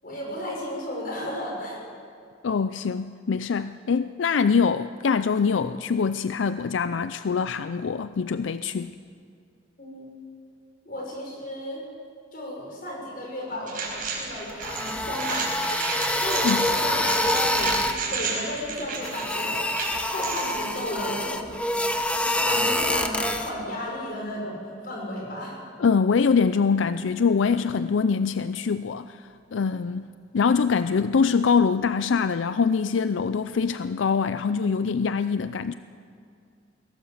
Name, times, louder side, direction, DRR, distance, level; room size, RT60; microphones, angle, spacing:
voice 1, 0.0-1.8 9.8-10.2 10.8-11.8 12.3-15.4 16.2-17.7 18.1-19.6 20.0-21.4 22.4-25.6, left 1 dB, 50° left, -1 dB, 6.2 m, -34 dB
voice 2, 2.4-8.9 16.4-16.7 25.8-30.1 30.3-35.7, left 5 dB, 90° left, 12 dB, 0.5 m, -24 dB
sound 1, 13.7-20.5, right 5 dB, 50° right, 5.1 m, -32 dB
sound 2, 14.5-18.0 18.9-23.5, left 1 dB, 5° left, 1.0 m, -26 dB
22.0 x 17.5 x 7.4 m, 2.3 s
head